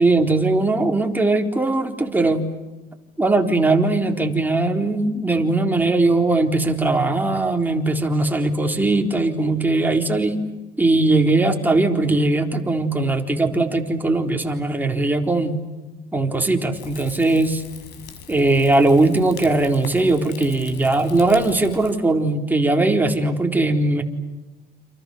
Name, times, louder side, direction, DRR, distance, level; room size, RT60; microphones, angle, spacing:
voice 1, 0.0-2.4 3.2-10.4 10.8-15.6 16.1-17.6 18.3-24.0, right 2 dB, 10° right, 3 dB, 4.1 m, -19 dB
Rain / Fire, 16.7-21.9, left 7 dB, 80° left, 6.1 m, -41 dB
29.5 x 28.5 x 6.8 m, 1.1 s
cardioid pair, 110°, 17 cm